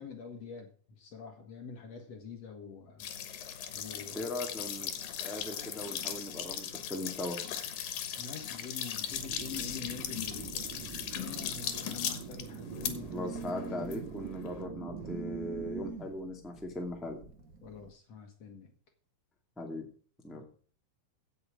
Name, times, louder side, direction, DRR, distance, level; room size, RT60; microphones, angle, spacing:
voice 1, 0.0-3.1 3.7-4.3 8.2-13.5 17.6-18.7 20.3-20.5, left 6 dB, 55° left, 4 dB, 2.4 m, -45 dB
sound 1, 3.0-14.6, left 9 dB, 75° left, 3.0 m, -39 dB
voice 2, 4.1-4.9 5.2-7.4 13.0-17.2 19.6-19.8 20.2-20.4, left 1 dB, ahead, 1 dB, 1.5 m, -39 dB
sound 2, 9.1-15.9, right 8 dB, 75° right, 3.0 m, -44 dB
Telephone, 9.8-17.9, right 4 dB, 40° right, 1.3 m, -48 dB
16.5 x 7.0 x 5.0 m, 0.44 s
omnidirectional pair, 4.0 m